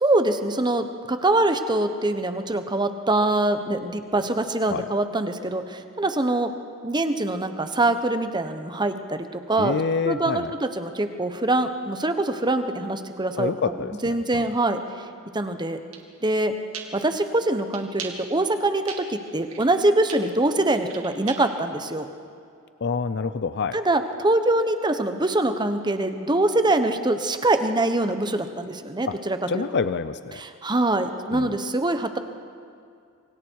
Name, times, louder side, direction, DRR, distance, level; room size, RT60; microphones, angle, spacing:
voice 1, 0.0-6.5 6.8-9.8 10.0-13.5 14.0-14.8 15.3-15.8 16.2-16.5 16.9-22.1 23.7-29.6 30.4-32.2, right 2 dB, 20° right, 8 dB, 1.1 m, -24 dB
voice 2, 9.6-10.5 13.4-14.4 22.8-23.8 29.1-29.2 29.5-30.4 31.3-31.6, left 5 dB, 50° left, 12 dB, 0.5 m, -27 dB
sound 1, 15.9-16.0 16.7-16.8 17.7-18.1 18.9-19.0 19.2-19.8 20.1-21.6, right 8 dB, 75° right, 2.4 m, -36 dB
27.0 x 24.5 x 4.7 m, 2.4 s
head